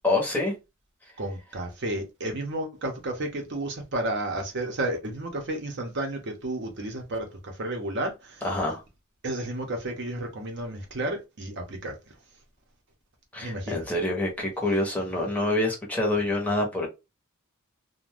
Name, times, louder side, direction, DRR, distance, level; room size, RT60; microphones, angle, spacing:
voice 1, 0.0-0.5 8.4-8.8 13.3-16.9, left 2 dB, 5° left, 0.7 m, -26 dB
voice 2, 1.2-8.4 9.2-12.0 13.4-13.9, right 1 dB, 50° right, 0.7 m, -32 dB
2.5 x 2.2 x 3.3 m
head